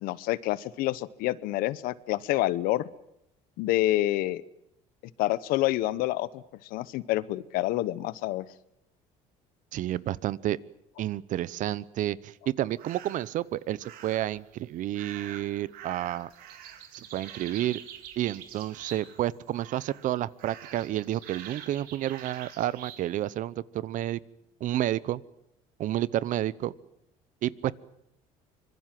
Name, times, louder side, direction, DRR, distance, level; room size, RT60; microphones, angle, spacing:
voice 1, 0.0-2.8 3.6-4.4 5.2-6.4 6.7-8.5, left 16 dB, 75° left, 18 dB, 1.0 m, -27 dB
voice 2, 9.7-10.6 11.0-16.3 16.9-17.8 18.2-24.2 24.6-25.2 25.8-26.7 27.4-27.7, right 13 dB, 60° right, 21 dB, 0.8 m, -30 dB
sound 1, 12.8-13.3 13.8-14.4 14.9-19.3 19.5-20.1 20.4-23.0, right 10 dB, 75° right, 3.2 m, -45 dB
25.0 x 22.0 x 7.6 m, 0.78 s
cardioid pair, 105°, 15 cm